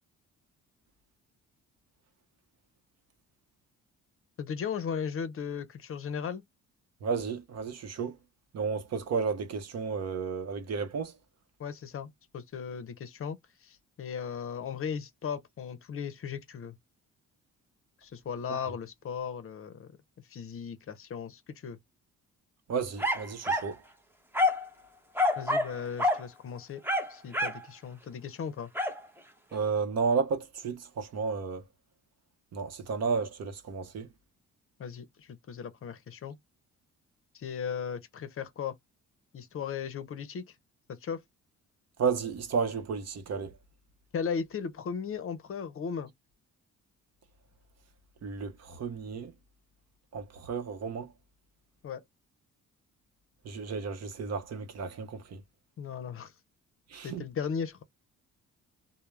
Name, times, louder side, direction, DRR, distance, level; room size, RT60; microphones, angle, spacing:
voice 1, 4.4-6.4 11.6-16.8 18.0-19.9 20.3-21.8 25.4-26.8 27.1-28.7 34.8-36.4 37.3-38.8 39.3-40.5 40.9-41.2 44.1-46.1 51.8-52.0 55.8-56.3 57.0-57.8, left 7 dB, 45° left, 0.6 m, -37 dB
voice 2, 7.0-8.1 8.5-11.1 22.7-23.7 29.5-31.6 32.5-34.1 42.0-43.5 48.2-49.3 50.1-51.1 53.4-55.4 56.9-57.2, right 5 dB, 55° right, 0.7 m, -32 dB
sound 1, 23.0-23.7 24.3-24.7 25.2-25.7 26.0-26.2 26.8-27.6 28.8-29.0, left 1 dB, 5° right, 0.7 m, -27 dB
2.2 x 2.1 x 3.1 m
cardioid pair, 90°, 30 cm